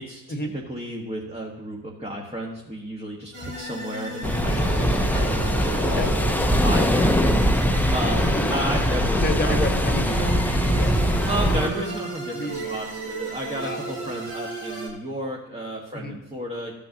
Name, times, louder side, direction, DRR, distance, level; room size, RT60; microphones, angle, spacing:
voice 1, 0.0-6.2 6.6-7.1 7.9-9.7 11.3-16.8, right 1 dB, 15° right, -1 dB, 1.5 m, -32 dB
sound 1, 3.3-14.9, right 3 dB, 60° right, 2.6 m, -34 dB
sound 2, 4.2-11.7, equal, 5° left, 0.8 m, -22 dB
voice 2, 5.8-6.1 8.2-8.5 9.2-11.5 11.7-12.0 12.3-12.7 13.5-14.1 15.9-16.2, left 1 dB, 20° left, 7 dB, 1.4 m, -32 dB
14.5 x 8.3 x 2.8 m, 0.93 s
figure-of-eight pair, 45°, 46 cm